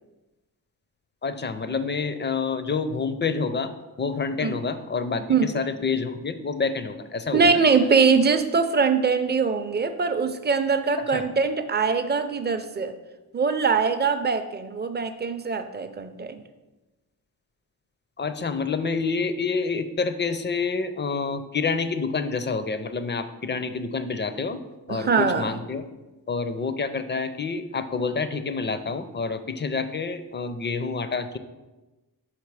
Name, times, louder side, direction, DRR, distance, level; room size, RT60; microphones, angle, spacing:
voice 1, 1.2-7.6 11.0-11.2 18.2-24.6 24.9-25.8 26.3-31.4, left 4 dB, 30° left, 10 dB, 0.4 m, -28 dB
voice 2, 7.3-12.9 13.3-16.4 24.9-25.5, right 5 dB, 25° right, 8 dB, 0.5 m, -22 dB
5.9 x 4.8 x 4.7 m, 1.1 s
wide cardioid pair, 105°, 38 cm